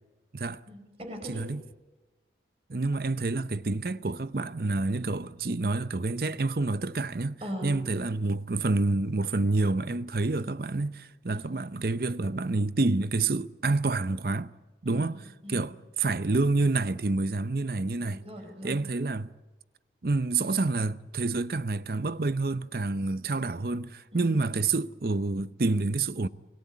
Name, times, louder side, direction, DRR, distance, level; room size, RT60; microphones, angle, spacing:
voice 1, 0.7-1.5 7.4-7.7 11.3-11.6 14.9-15.7 18.1-18.8 24.1-24.4, equal, 35° right, 4.9 m, -40 dB
voice 2, 1.3-1.6 2.7-14.5 14.8-15.2 15.5-18.2 18.6-19.3 20.0-26.3, right 3 dB, 55° right, 0.7 m, -28 dB
29.0 x 17.5 x 8.4 m
head